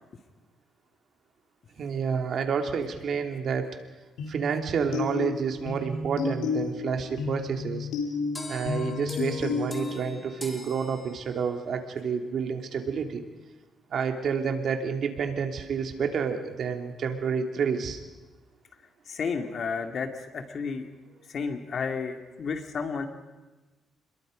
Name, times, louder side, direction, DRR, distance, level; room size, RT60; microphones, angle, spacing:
voice 1, 1.8-3.7 4.3-7.9 8.5-13.2 13.9-18.0, right 6 dB, 60° right, 5 dB, 2.7 m, -29 dB
sound 1, 4.2-10.1, left 5 dB, 90° left, 3.5 m, -32 dB
sound 2, 8.4-11.6, left 2 dB, 20° left, 3.3 m, -41 dB
voice 2, 19.1-20.9 21.3-23.1, left 5 dB, 55° left, 5 dB, 2.6 m, -32 dB
27.0 x 21.5 x 5.2 m, 1.2 s
cardioid pair, 90°, 0 cm